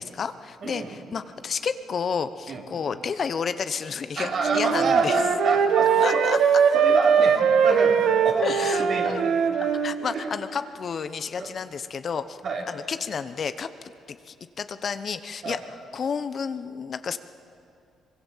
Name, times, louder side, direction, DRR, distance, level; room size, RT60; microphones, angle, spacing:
voice 1, 0.0-5.2 6.0-6.4 8.4-9.2 9.8-12.4 12.7-13.7 14.1-15.6 15.9-17.2, left 6 dB, 50° left, 12 dB, 0.9 m, -31 dB
voice 2, 0.6-1.0 2.5-2.6 4.2-6.2 6.7-8.0 8.2-9.2 10.1-10.3 11.4-11.5 12.4-12.6 15.4-15.6, right 4 dB, 60° right, 0 dB, 3.9 m, -27 dB
Wind instrument woodwind instrument, 4.4-10.0, right 7 dB, 75° right, 1.4 m, -21 dB
24.0 x 21.5 x 7.4 m, 2.5 s
cardioid pair, 90°, 0 cm